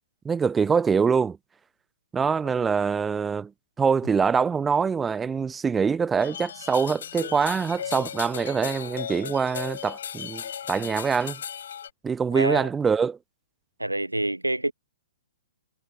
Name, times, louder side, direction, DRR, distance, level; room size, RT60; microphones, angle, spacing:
voice 1, 0.2-1.4 2.1-3.5 3.8-10.4 10.7-11.4 12.0-13.2, right 6 dB, 10° right, 0.4 m, -24 dB
sound 1, 6.2-11.9, left 8 dB, 55° left, 5.3 m, -36 dB
voice 2, 12.3-12.7 13.8-14.7, right 1 dB, 85° right, 0.5 m, -26 dB
figure-of-eight pair, 115°, 0 cm